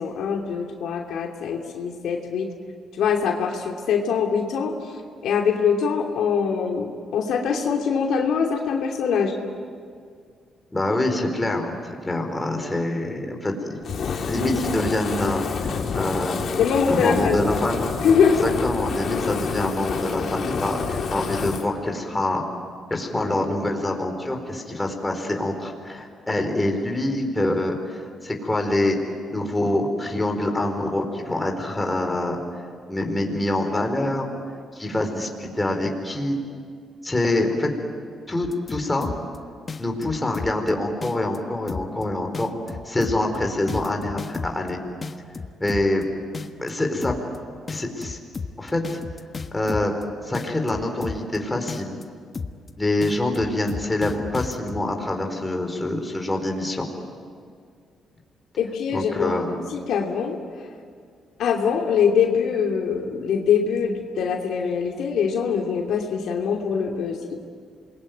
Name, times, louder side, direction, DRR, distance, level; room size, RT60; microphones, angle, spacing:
voice 1, 0.0-2.5 2.9-4.7 5.2-9.3 16.5-17.4 18.0-18.5 58.6-60.4 61.4-67.4, left 6 dB, 75° left, 1 dB, 2.8 m, -23 dB
voice 2, 10.7-11.7 12.0-16.4 16.9-17.8 18.3-22.4 22.9-29.0 29.3-32.4 32.9-34.3 34.7-36.4 37.0-37.7 38.3-39.1 39.8-44.8 45.6-46.1 46.6-47.1 47.7-48.2 48.6-49.0 49.5-49.9 50.2-52.0 52.8-56.9 58.9-59.5, left 1 dB, 15° left, 3 dB, 4.5 m, -25 dB
Fire, 13.8-21.7, left 5 dB, 60° left, 2.3 m, -28 dB
sound 1, 38.4-39.4 39.7-40.7 41.0-41.4 41.7-42.0 42.3-44.7 45.0-46.0 46.3-46.7 47.0-47.4 47.7-50.0 50.3-51.4 51.7-52.0 52.3-52.7 53.0-54.8, left 4 dB, 35° left, 1.4 m, -33 dB
27.5 x 21.5 x 9.4 m, 2.1 s
cardioid pair, 90°, 0 cm